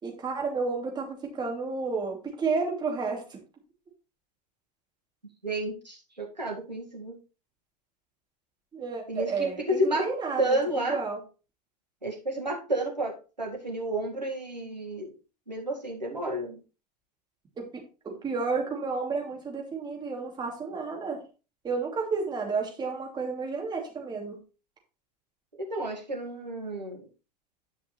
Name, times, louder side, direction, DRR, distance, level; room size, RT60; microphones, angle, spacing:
voice 1, 0.0-3.4 8.7-11.2 17.6-21.2 21.6-24.4, right 4 dB, 20° right, 0 dB, 2.9 m, -31 dB
voice 2, 5.4-7.2 9.1-10.1 10.4-11.0 12.0-15.1 15.5-16.6 25.6-27.1, right 1 dB, 85° right, 0 dB, 2.1 m, -31 dB
11.0 x 5.8 x 3.3 m, 0.33 s
figure-of-eight pair, 85°, 21 cm